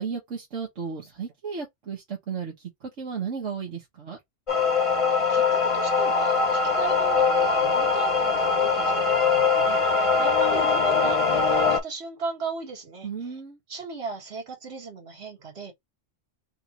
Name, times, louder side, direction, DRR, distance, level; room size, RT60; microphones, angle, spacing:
voice 1, 0.0-2.5 2.8-4.2 13.0-13.6, right 6 dB, 80° right, 1.7 m, -34 dB
sound 1, 4.5-11.8, left 4 dB, 30° left, 0.8 m, -22 dB
voice 2, 5.1-13.4 13.7-15.7, right 3 dB, 60° right, 1.9 m, -36 dB
3.6 x 2.6 x 4.3 m
omnidirectional pair, 1.3 m